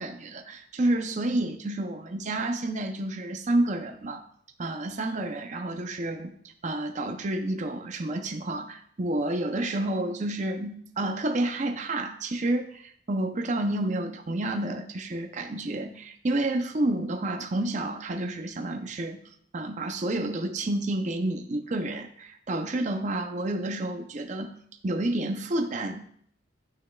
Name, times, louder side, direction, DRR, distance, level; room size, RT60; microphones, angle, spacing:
voice 1, 0.0-4.2 4.6-6.3 6.6-19.2 19.5-24.5 24.8-26.1, right 1 dB, 40° right, 5 dB, 0.5 m, -29 dB
11.5 x 6.2 x 2.3 m, 0.63 s
head